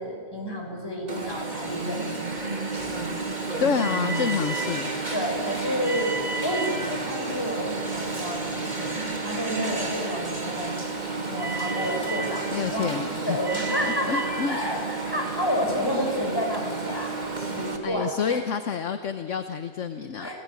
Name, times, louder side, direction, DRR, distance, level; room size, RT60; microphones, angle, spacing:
voice 1, 0.0-2.5 5.1-6.1 6.4-10.7 11.3-18.4 20.2-20.3, equal, 15° left, 0 dB, 6.0 m, -30 dB
Alarm, 1.1-17.8, right 3 dB, 30° right, 2.5 m, -31 dB
voice 2, 3.6-4.9 12.5-13.4 13.8-14.6 17.8-20.3, left 6 dB, 55° left, 9 dB, 1.3 m, -28 dB
29.5 x 18.0 x 9.8 m, 2.1 s
omnidirectional pair, 1.5 m